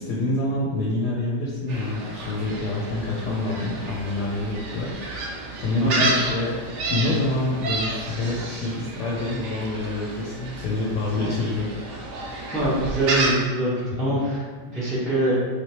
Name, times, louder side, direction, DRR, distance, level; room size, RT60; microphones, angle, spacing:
voice 1, 0.0-6.6 6.9-11.7 14.1-14.2, left 2 dB, 80° left, -4 dB, 1.2 m, -27 dB
Gull seagull, 1.7-13.3, right 2 dB, 65° right, 0.7 m, -31 dB
voice 2, 5.8-6.2 11.2-11.3 12.5-14.4 14.7-15.3, right 1 dB, ahead, -9 dB, 0.5 m, -24 dB
3.3 x 2.9 x 2.9 m, 1.5 s
omnidirectional pair, 1.8 m